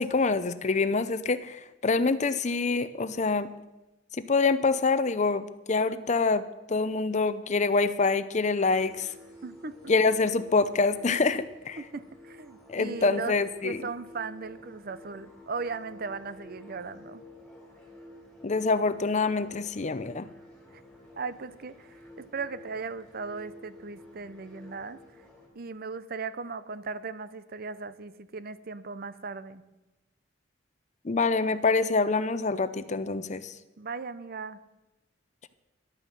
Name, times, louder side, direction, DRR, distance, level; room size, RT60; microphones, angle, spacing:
voice 1, 0.0-3.5 4.2-9.1 9.9-11.8 12.7-13.8 18.4-20.3 31.0-33.5, left 4 dB, 40° left, 14 dB, 0.6 m, -26 dB
sound 1, 8.7-25.5, left 1 dB, 5° left, 5.2 m, -51 dB
voice 2, 9.4-9.8 11.8-17.2 20.7-20.8 21.2-21.9 22.2-25.0 25.5-29.6 33.8-34.6, right 4 dB, 55° right, 14 dB, 0.7 m, -37 dB
11.5 x 9.3 x 7.5 m, 1.0 s
head